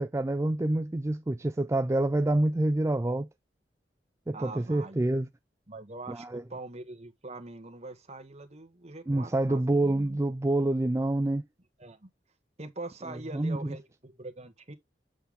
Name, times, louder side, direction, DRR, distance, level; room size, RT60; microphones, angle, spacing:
voice 1, 0.0-3.3 4.3-5.3 6.1-6.4 9.1-11.4 13.3-13.8, right 1 dB, 15° right, 0.4 m, -27 dB
voice 2, 4.3-5.0 5.7-10.2 11.8-12.1 12.6-14.7, right 2 dB, 40° right, 1.6 m, -43 dB
8.1 x 5.5 x 3.6 m
head